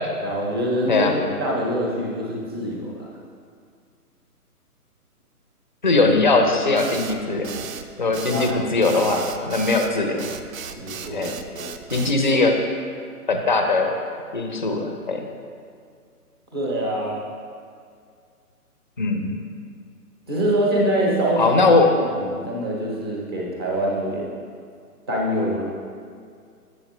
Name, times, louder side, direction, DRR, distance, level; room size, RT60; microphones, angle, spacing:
voice 1, 0.2-3.1 8.1-8.6 10.8-11.7 16.5-17.2 20.3-21.6 21.9-24.4 25.1-25.6, equal, 15° right, -3 dB, 0.6 m, -25 dB
voice 2, 5.8-7.5 8.0-10.3 11.1-11.3 11.9-12.6 13.3-13.9 14.3-15.3 19.0-19.3 21.4-21.9, left 3 dB, 35° left, 4 dB, 0.5 m, -20 dB
sound 1, 6.8-12.2, right 7 dB, 60° right, 0.5 m, -35 dB
7.6 x 7.2 x 3.0 m, 2.2 s
hypercardioid pair, 155°, 46 cm